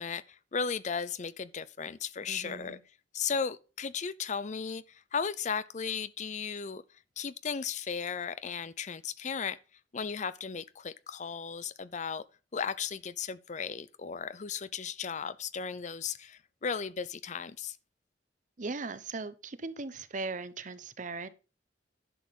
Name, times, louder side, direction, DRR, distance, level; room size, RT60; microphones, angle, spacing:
voice 1, 0.0-2.8 3.1-6.8 7.2-9.6 9.9-12.2 12.5-17.8, left 6 dB, 40° left, 0.5 m, -35 dB
voice 2, 2.3-2.8 18.6-21.3, right 3 dB, 45° right, 0.8 m, -38 dB
11.0 x 7.2 x 4.1 m
head